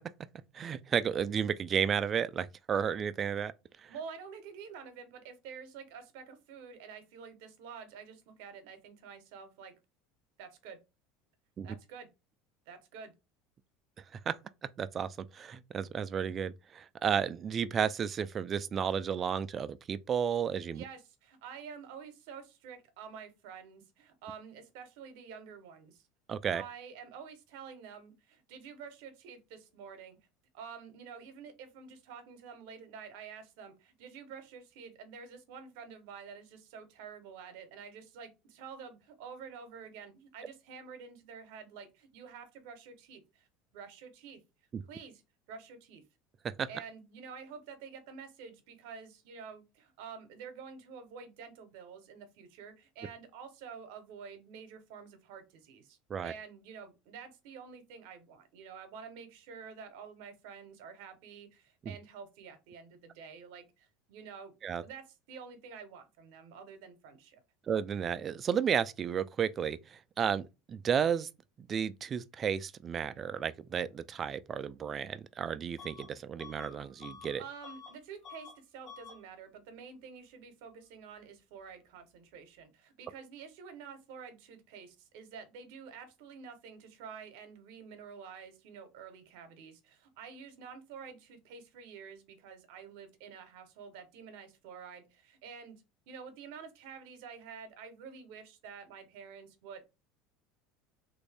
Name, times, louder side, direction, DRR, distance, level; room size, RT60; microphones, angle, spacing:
voice 1, 0.5-3.5 3.8-3.9 11.6-11.7 14.3-14.4 14.8-20.8 26.3-26.6 44.7-44.8 46.6-46.7 56.1-56.3 61.8-61.9 64.6-64.8 67.7-71.3 71.6-77.4, right 7 dB, 35° right, 0.3 m, -32 dB
voice 2, 3.9-9.7 10.4-10.8 11.6-12.1 12.7-13.1 20.7-26.1 26.5-30.2 30.5-43.5 43.7-44.4 44.9-45.2 45.5-46.0 46.7-64.5 64.8-67.4 77.4-99.9, right 6 dB, 75° right, 0.8 m, -49 dB
Bus / Alarm, 75.8-76.1 76.4-78.0 78.2-78.6 78.8-79.2, left 6 dB, 50° left, 1.0 m, -50 dB
3.1 x 2.6 x 3.3 m
supercardioid pair, 100°, 0 cm